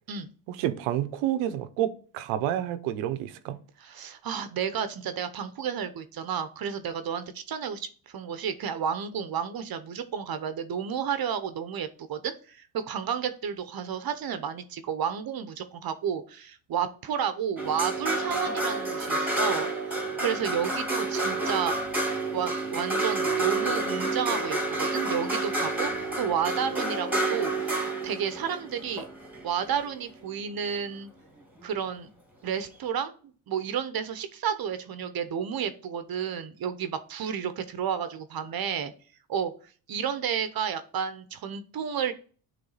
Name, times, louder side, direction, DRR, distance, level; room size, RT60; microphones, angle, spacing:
voice 1, 0.5-3.6, right 12 dB, 85° right, 0.9 m, -29 dB
voice 2, 3.8-21.7 22.3-29.0 29.4-31.1 31.6-32.1 32.4-33.2 33.5-38.9 39.3-39.5 39.9-42.1, right 8 dB, 45° right, 0.9 m, -31 dB
sound 1, 17.6-29.9 31.6-31.7, right 2 dB, 5° right, 1.9 m, -29 dB
8.7 x 3.5 x 4.0 m
supercardioid pair, 90°, 49 cm